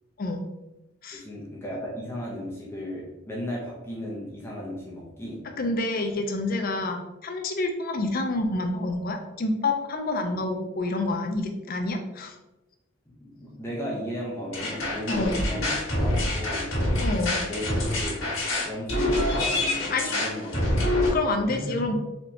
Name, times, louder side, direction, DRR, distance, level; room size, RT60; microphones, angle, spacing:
voice 1, 1.1-5.4 13.1-15.7 16.0-16.9 17.4-18.2 18.5-21.0 21.5-21.9, equal, 10° left, -5 dB, 0.7 m, -35 dB
voice 2, 5.6-12.4 15.1-15.4 17.0-17.5 19.9-20.3 21.1-21.9, left 2 dB, 45° left, 5 dB, 0.5 m, -28 dB
sound 1, 14.5-21.1, left 1 dB, 80° left, 1.5 m, -26 dB
4.3 x 3.1 x 2.8 m, 1.0 s
head